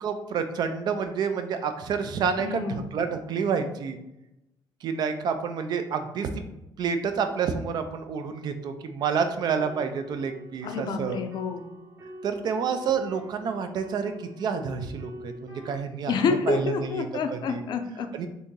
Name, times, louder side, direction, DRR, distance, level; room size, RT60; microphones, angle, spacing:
voice 1, 0.0-4.0 4.8-6.4 6.8-11.2 12.2-16.2 16.5-17.1 17.3-17.6 18.1-18.3, right 6 dB, 55° right, 8 dB, 0.4 m, -29 dB
voice 2, 2.4-2.8 10.6-11.7 16.1-18.1, left 5 dB, 60° left, 6 dB, 0.4 m, -28 dB
sound 1, 9.0-15.8, right 1 dB, 30° right, 0.9 m, -45 dB
2.8 x 2.6 x 3.7 m, 0.88 s
cardioid pair, 115°, 9 cm